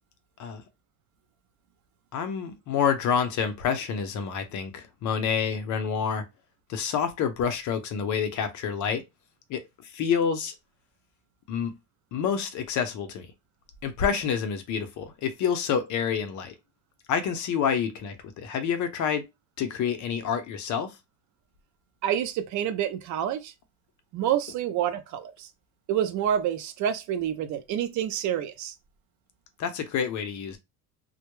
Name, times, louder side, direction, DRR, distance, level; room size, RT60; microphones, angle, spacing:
voice 1, 2.1-6.3 6.7-9.0 9.5-10.5 11.5-11.7 12.1-13.3 13.8-16.5 17.1-19.3 19.6-21.0 29.6-30.6, left 7 dB, 50° left, 0.6 m, -28 dB
voice 2, 22.0-23.5 24.1-25.5 25.9-28.7, right 10 dB, 50° right, 0.5 m, -28 dB
2.2 x 2.0 x 3.0 m
cardioid pair, 130°, 39 cm